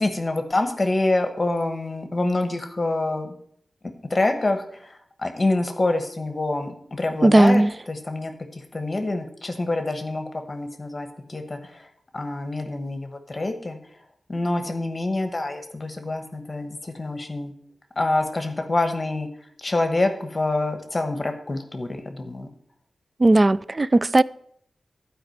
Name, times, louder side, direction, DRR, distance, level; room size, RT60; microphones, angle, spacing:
voice 1, 0.0-3.3 4.1-11.9 12.1-13.8 14.3-17.5 18.0-19.3 19.6-22.5, left 2 dB, 30° left, 1.2 m, -26 dB
voice 2, 7.2-7.7 23.2-24.2, right 2 dB, 30° right, 0.3 m, -16 dB
12.5 x 5.0 x 7.8 m
wide cardioid pair, 130°, 0 cm